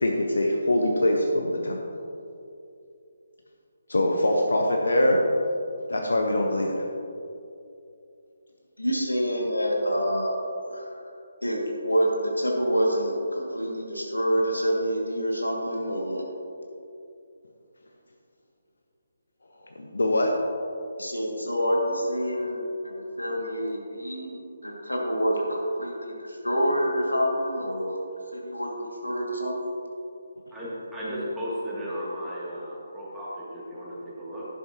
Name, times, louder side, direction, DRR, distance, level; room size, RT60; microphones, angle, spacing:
voice 1, 0.0-1.8 3.9-5.2 5.9-6.8 19.8-20.4, left 1 dB, 65° left, 1 dB, 1.0 m, -23 dB
voice 2, 8.8-10.4 10.7-11.0 11.4-16.2 21.0-28.0 28.3-29.7, equal, 85° left, -1 dB, 2.2 m, -27 dB
voice 3, 30.5-34.5, equal, 5° right, -10 dB, 2.6 m, -34 dB
11.5 x 10.5 x 2.9 m, 2.6 s
figure-of-eight pair, 145°, 0 cm